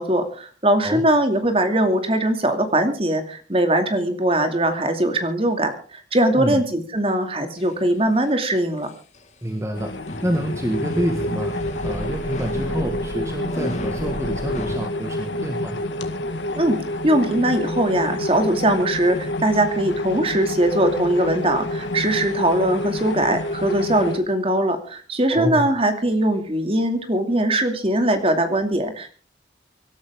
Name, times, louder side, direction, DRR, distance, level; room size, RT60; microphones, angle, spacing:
voice 1, 0.0-8.9 16.5-16.8 17.0-29.1, right 1 dB, 30° right, 7 dB, 2.5 m, -21 dB
sound 1, 7.6-7.7 8.8-9.2 10.1-14.8, left 1 dB, 40° left, 1.8 m, -32 dB
voice 2, 9.4-11.6 11.8-15.9 25.3-25.7, equal, 15° right, 4 dB, 1.7 m, -27 dB
sound 2, 9.7-24.2, left 1 dB, 90° left, 2.0 m, -28 dB
25.0 x 12.5 x 3.7 m, 0.39 s
head